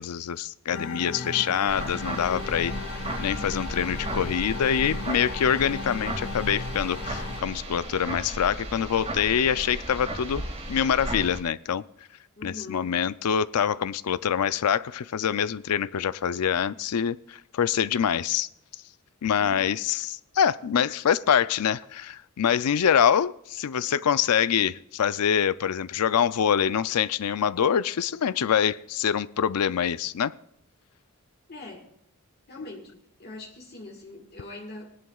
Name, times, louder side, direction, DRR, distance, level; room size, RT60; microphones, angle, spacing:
voice 1, 0.0-2.7 3.2-11.8 12.4-18.5 19.2-30.3, left 8 dB, 85° left, 16 dB, 0.4 m, -25 dB
sound 1, 0.7-7.4, left 3 dB, 65° left, 1.2 m, -36 dB
voice 2, 0.7-1.5 12.4-13.0 19.4-20.0 31.5-31.9 32.5-35.0, left 2 dB, 45° left, -1 dB, 1.6 m, -43 dB
sound 2, 1.7-11.4, right 1 dB, 30° right, 2.0 m, -35 dB
18.5 x 11.0 x 2.4 m, 0.74 s
head